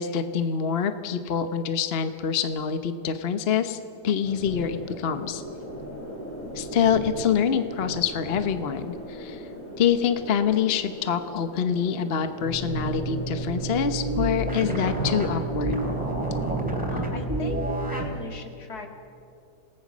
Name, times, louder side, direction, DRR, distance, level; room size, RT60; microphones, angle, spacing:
voice 1, 0.0-3.8 4.0-5.4 6.5-9.5 9.8-15.8, left 7 dB, 45° left, 9 dB, 1.0 m, -26 dB
sound 1, 4.2-16.7, equal, 30° left, 5.8 m, -37 dB
sound 2, 12.4-18.1, right 2 dB, 5° right, 3.3 m, -29 dB
voice 2, 16.9-17.6 17.9-18.9, left 4 dB, 70° left, 3 dB, 2.6 m, -38 dB
28.0 x 18.5 x 6.2 m, 2.4 s
omnidirectional pair, 1.7 m